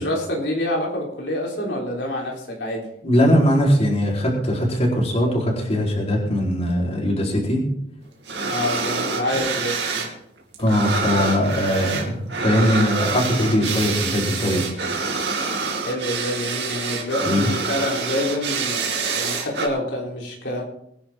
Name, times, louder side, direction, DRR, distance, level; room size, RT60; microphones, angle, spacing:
voice 1, 0.0-2.9 8.4-10.1 15.8-20.6, left 1 dB, 85° left, -2 dB, 3.7 m, -27 dB
voice 2, 3.0-7.6 10.6-14.6 17.2-17.5, equal, 35° left, -2 dB, 4.1 m, -20 dB
sound 1, 8.2-10.1 10.4-19.7, right 4 dB, 75° right, 2.6 m, -26 dB
22.5 x 10.5 x 3.8 m, 0.72 s
head